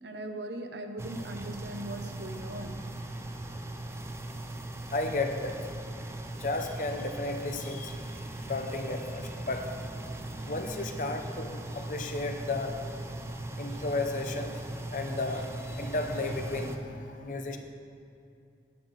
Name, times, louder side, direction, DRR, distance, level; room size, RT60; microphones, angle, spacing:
voice 1, 0.0-2.9, right 1 dB, 75° right, 5 dB, 0.8 m, -39 dB
sound 1, 1.0-16.8, right 1 dB, 15° right, 0.5 m, -39 dB
voice 2, 4.9-5.6 6.3-8.0 8.4-9.7 10.4-12.7 13.6-14.6 14.9-17.6, left 2 dB, 45° left, 5 dB, 0.7 m, -33 dB
10.0 x 8.9 x 4.0 m, 2.6 s
head